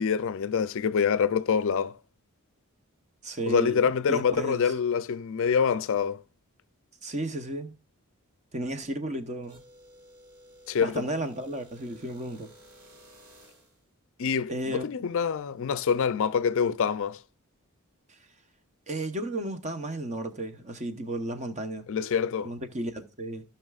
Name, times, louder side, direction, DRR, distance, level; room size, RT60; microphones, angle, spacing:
voice 1, 0.0-2.0 3.5-6.2 10.7-11.1 14.2-17.2 21.9-22.5, left 6 dB, 60° left, 0.4 m, -26 dB
voice 2, 3.2-4.7 7.0-7.7 8.5-9.6 10.8-12.5 14.5-14.9 18.9-21.9 22.4-23.4, right 1 dB, 30° right, 0.8 m, -33 dB
sound 1, 9.4-13.8, equal, 85° right, 3.2 m, -54 dB
16.0 x 5.7 x 2.4 m
head